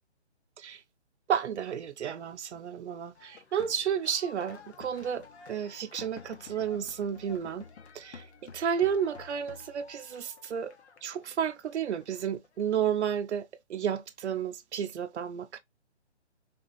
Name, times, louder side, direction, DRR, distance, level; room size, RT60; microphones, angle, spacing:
voice 1, 1.3-7.7 7.9-8.3 8.5-10.7 11.0-15.6, right 8 dB, 75° right, 0.6 m, -32 dB
sound 1, 3.1-12.7, left 5 dB, 70° left, 0.7 m, -51 dB
3.4 x 2.3 x 2.4 m
hypercardioid pair, 180°, 35 cm